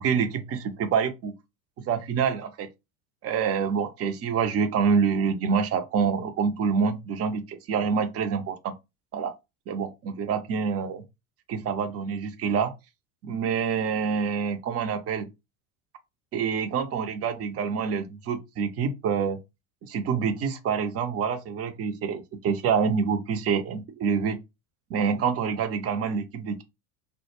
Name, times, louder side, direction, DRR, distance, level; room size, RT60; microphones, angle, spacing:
voice 1, 0.0-1.3 1.9-2.7 3.2-8.7 9.1-9.4 9.7-11.0 11.5-12.7 13.2-15.3 16.3-19.4 19.9-24.4 24.9-26.6, right 6 dB, 35° right, 0.5 m, -26 dB
2.1 x 2.0 x 3.0 m
hypercardioid pair, 85°, 44 cm